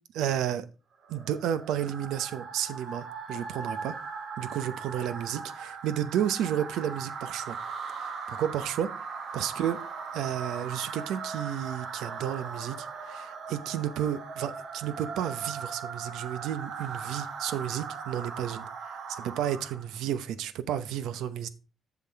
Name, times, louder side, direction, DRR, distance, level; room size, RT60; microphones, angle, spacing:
voice 1, 0.1-0.7 1.1-3.9 4.4-7.6 8.0-8.9 9.3-9.8 10.1-18.7 19.1-21.5, right 10 dB, 85° right, 0.7 m, -32 dB
sound 1, 1.0-19.9, right 5 dB, 70° right, 1.2 m, -39 dB
7.3 x 5.9 x 4.6 m
cardioid pair, 90°, 0 cm